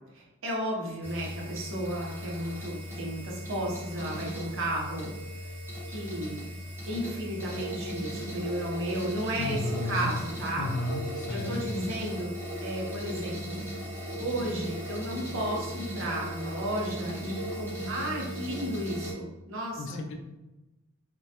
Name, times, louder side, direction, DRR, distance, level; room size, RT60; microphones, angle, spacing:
voice 1, 0.1-5.1 5.9-6.5 6.9-10.7 11.3-13.6 14.2-20.0, right 1 dB, 65° right, -3 dB, 0.7 m, -33 dB
sound 1, 1.0-19.1, equal, 10° right, 0.8 m, -37 dB
voice 2, 9.4-10.1 10.6-11.8 19.8-20.1, left 2 dB, 60° left, 3 dB, 0.4 m, -33 dB
2.2 x 2.1 x 2.8 m, 1.0 s
head